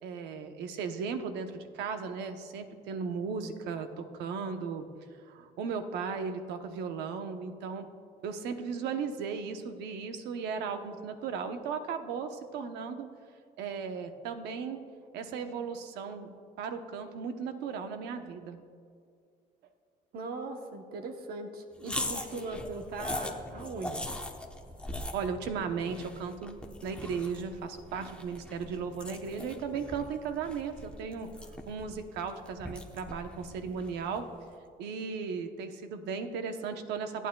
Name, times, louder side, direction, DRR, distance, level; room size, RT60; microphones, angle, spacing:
voice 1, 0.0-4.9 5.3-7.9 8.2-13.1 13.6-14.8 15.1-16.3 16.6-18.6 24.9-31.3 31.7-34.3 34.8-37.3, right 5 dB, 85° right, 7 dB, 0.9 m, -36 dB
voice 2, 20.1-24.1, right 3 dB, 65° right, 5 dB, 1.0 m, -39 dB
sound 1, 21.8-34.3, left 1 dB, 5° left, 0.9 m, -41 dB
26.5 x 9.1 x 2.3 m, 2.3 s
cardioid pair, 110°, 17 cm